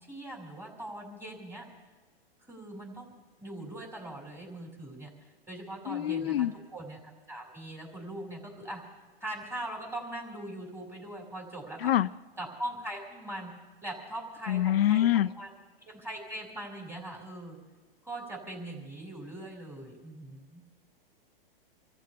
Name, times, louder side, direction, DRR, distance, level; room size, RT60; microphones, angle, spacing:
voice 1, 0.1-1.6 2.5-3.1 3.4-5.1 5.5-6.5 6.7-7.0 7.3-8.8 9.2-11.9 12.4-13.5 13.8-15.5 15.9-17.6 18.0-20.6, right 1 dB, 10° right, -1 dB, 5.3 m, -41 dB
voice 2, 5.9-6.5 11.8-12.1 14.5-15.3, left 12 dB, 85° left, 13 dB, 0.6 m, -25 dB
28.0 x 14.5 x 3.6 m, 1.2 s
hypercardioid pair, 140°, 29 cm